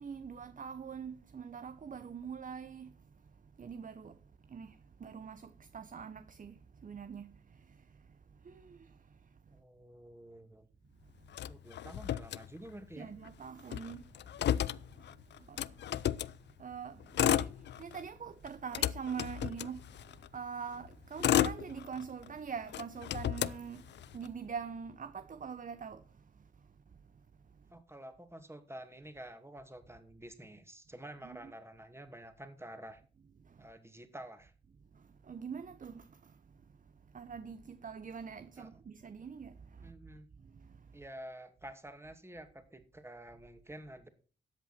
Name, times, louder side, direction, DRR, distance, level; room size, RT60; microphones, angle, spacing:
voice 1, 0.0-2.9 3.6-4.2 4.5-6.5 6.8-7.3 8.4-8.9 13.0-14.1 15.5-15.6 16.6-17.5 17.8-19.8 20.3-23.8 24.1-26.0 31.2-31.4 35.3-36.2 37.1-39.6 39.8-39.9, right 6 dB, 40° right, 0.8 m, -43 dB
voice 2, 9.5-10.7 11.5-13.1 27.7-33.0 33.6-34.5 38.6-38.7 39.8-40.3 40.9-44.1, right 1 dB, 10° right, 2.4 m, -49 dB
Motor vehicle (road), 11.3-12.9 13.2-13.3 13.6-16.4 17.0-18.1 18.5-20.3 20.9-22.3 22.7-24.3, left 11 dB, 60° left, 0.5 m, -33 dB
13.5 x 8.1 x 4.4 m
hypercardioid pair, 40°, 20 cm